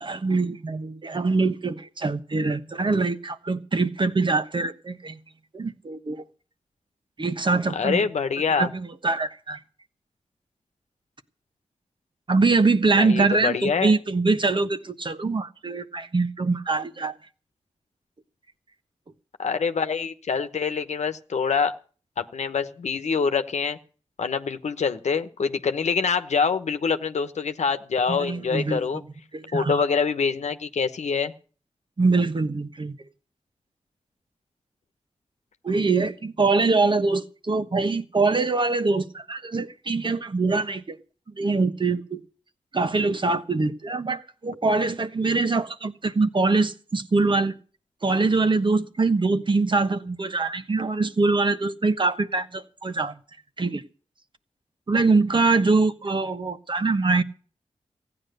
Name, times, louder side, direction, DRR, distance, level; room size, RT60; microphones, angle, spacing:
voice 1, 0.0-5.2 5.5-6.2 7.2-8.0 8.6-9.6 12.3-17.1 28.1-28.8 29.3-29.8 32.0-32.9 35.6-41.0 41.4-42.2 42.7-47.5 48.0-53.2 53.6-53.8 54.9-57.2, right 3 dB, 45° right, 1.2 m, -23 dB
voice 2, 7.7-8.7 13.0-13.9 19.4-21.7 22.2-23.8 24.2-29.0 29.5-31.3, left 5 dB, 80° left, 1.1 m, -25 dB
15.5 x 9.8 x 6.6 m
cardioid pair, 60°, 12 cm